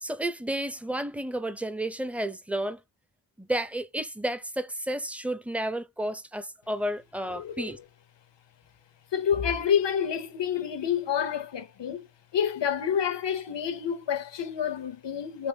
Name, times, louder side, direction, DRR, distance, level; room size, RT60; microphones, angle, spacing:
voice 1, 0.0-2.8 3.4-7.8, right 1 dB, 5° right, 0.5 m, -31 dB
voice 2, 7.3-7.7 9.1-12.1 12.3-15.5, left 8 dB, 85° left, 0.7 m, -28 dB
3.4 x 3.0 x 2.7 m
cardioid pair, 50°, 41 cm